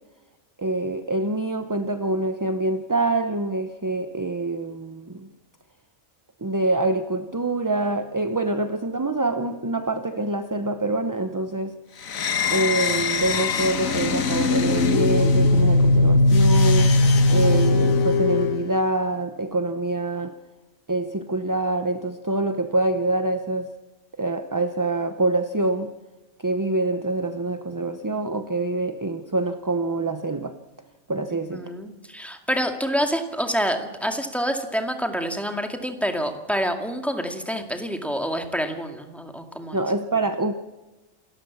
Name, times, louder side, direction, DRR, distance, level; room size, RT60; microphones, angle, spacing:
voice 1, 0.6-5.3 6.4-11.7 12.5-16.9 17.3-20.3 20.9-23.7 24.2-25.9 26.4-30.5 31.1-31.7 39.7-40.5, right 2 dB, 20° right, 8 dB, 0.7 m, -25 dB
sound 1, 12.0-18.6, left 2 dB, 85° left, 1.7 m, -19 dB
voice 2, 31.5-39.8, equal, ahead, 4 dB, 2.1 m, -27 dB
28.0 x 14.0 x 7.3 m, 1.1 s
omnidirectional pair, 1.4 m